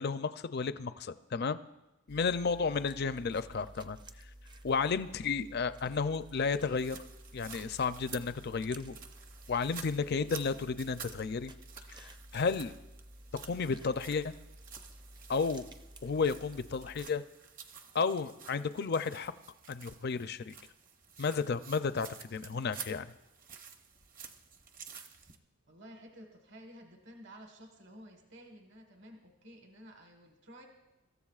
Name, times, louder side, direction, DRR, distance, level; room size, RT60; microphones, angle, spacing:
voice 1, 0.0-1.6 2.1-4.0 4.6-7.0 7.3-9.0 9.5-11.5 11.9-12.7 13.4-14.3 15.3-15.6 16.0-17.2 17.9-19.3 19.7-20.5 21.2-23.1, left 5 dB, 45° left, 12 dB, 0.4 m, -32 dB
sound 1, 2.1-17.1, right 1 dB, 20° right, 0.5 m, -53 dB
sound 2, 6.8-25.4, right 6 dB, 40° right, 0.9 m, -51 dB
voice 2, 25.7-30.7, equal, 55° right, 3 dB, 1.5 m, -53 dB
26.0 x 14.0 x 2.4 m, 0.99 s
head